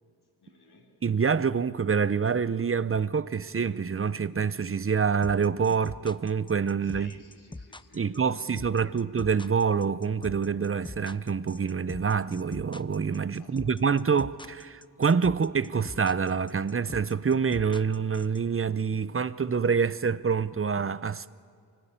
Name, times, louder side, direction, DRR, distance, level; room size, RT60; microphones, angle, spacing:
voice 1, 0.0-1.0 6.8-9.1 13.4-14.0, left 2 dB, 75° left, 3.9 m, -57 dB
voice 2, 1.0-7.1 7.9-21.3, right 6 dB, 35° right, 0.7 m, -26 dB
sound 1, 5.2-18.4, left 2 dB, 15° left, 0.6 m, -42 dB
24.5 x 18.0 x 8.8 m
wide cardioid pair, 80°, 39 cm